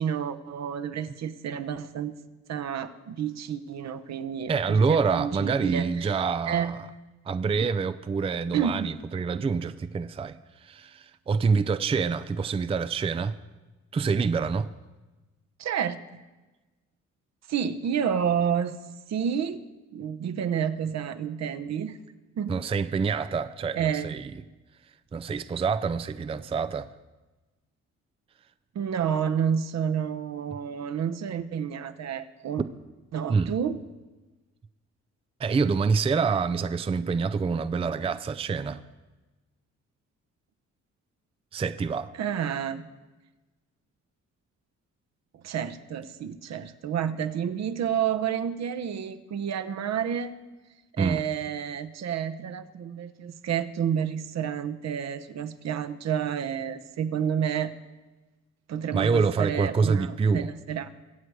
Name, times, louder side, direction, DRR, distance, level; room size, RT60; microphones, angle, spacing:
voice 1, 0.0-2.1 2.5-6.2 6.5-6.7 8.5-8.9 15.6-16.0 17.5-18.7 19.1-19.6 19.9-22.0 22.4-22.5 23.8-24.2 28.7-32.6 33.1-33.8 42.2-42.8 45.4-50.3 51.0-57.7 58.7-60.9, right 8 dB, 60° right, 0.9 m, -29 dB
voice 2, 4.5-6.9 7.3-13.4 13.9-14.7 22.5-24.3 25.1-26.9 33.3-33.6 35.4-38.8 41.5-42.1 51.0-51.2 58.9-60.5, right 5 dB, 20° right, 0.4 m, -26 dB
22.5 x 7.9 x 4.8 m
cardioid pair, 90°, 30 cm